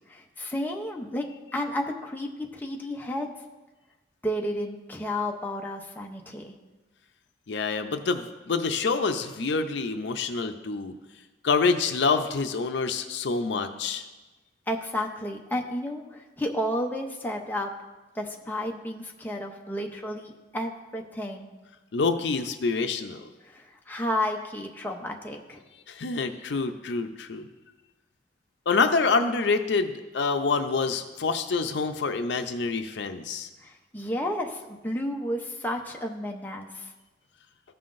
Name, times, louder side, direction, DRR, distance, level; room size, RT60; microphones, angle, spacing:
voice 1, 0.1-1.3 1.5-3.3 4.2-6.5 14.7-17.7 18.1-21.5 23.4-25.6 33.6-36.9, left 1 dB, 10° left, 1 dB, 0.7 m, -32 dB
voice 2, 7.5-10.9 11.4-14.0 21.9-23.2 25.9-27.4 28.7-33.5, left 4 dB, 75° left, 7 dB, 0.5 m, -26 dB
14.5 x 5.7 x 2.6 m, 1.1 s
head